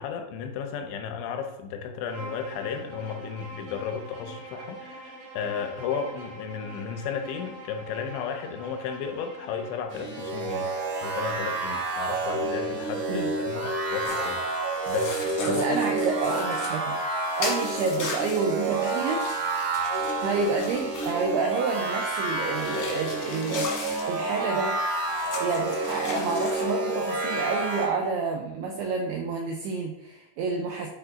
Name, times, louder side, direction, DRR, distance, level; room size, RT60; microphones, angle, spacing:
voice 1, 0.0-16.0, left 6 dB, 85° left, 5 dB, 2.9 m, -34 dB
Bowed string instrument, 2.0-9.9, right 2 dB, 70° right, 5.2 m, -43 dB
sound 1, 9.9-27.9, right 2 dB, 50° right, 1.6 m, -29 dB
sound 2, 14.0-14.3 14.8-16.8 17.4-21.3 22.0-24.1 25.1-26.8, left 3 dB, 60° left, 1.6 m, -37 dB
voice 2, 15.5-17.0 17.4-19.2 20.2-24.8 25.4-30.9, right 4 dB, 90° right, 1 dB, 2.3 m, -29 dB
11.5 x 4.5 x 2.6 m, 0.87 s
omnidirectional pair, 5.4 m